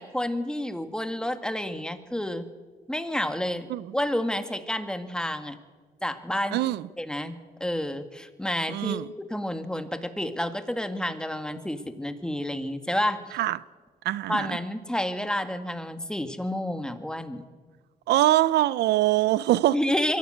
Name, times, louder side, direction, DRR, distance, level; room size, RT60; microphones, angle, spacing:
voice 1, 0.0-2.5 2.9-5.6 6.0-6.6 7.0-9.0 9.3-13.3 14.3-17.4 19.7-20.2, left 1 dB, 5° left, 1.9 m, -30 dB
voice 2, 6.5-6.8 8.7-9.1 13.3-13.6 14.0-14.6 18.1-19.8, right 15 dB, 85° right, 0.5 m, -23 dB
23.5 x 15.0 x 8.0 m
cardioid pair, 75°, 17 cm